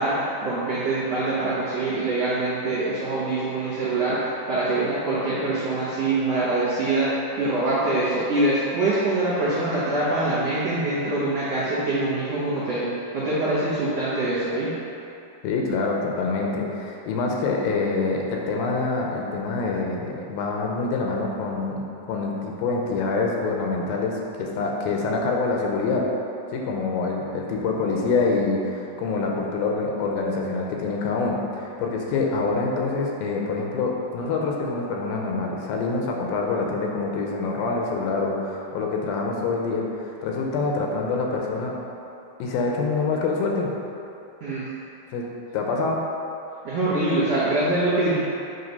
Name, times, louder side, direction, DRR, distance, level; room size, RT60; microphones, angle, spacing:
voice 1, 0.0-12.9 13.1-14.7 44.4-44.7 46.6-48.2, right 2 dB, 65° right, -11 dB, 1.6 m, -24 dB
voice 2, 15.4-21.8 22.1-26.1 26.5-41.7 42.4-43.7 45.1-45.3 45.5-46.0, left 3 dB, 80° left, 0 dB, 2.4 m, -26 dB
8.0 x 3.1 x 5.3 m, 2.8 s
omnidirectional pair, 4.2 m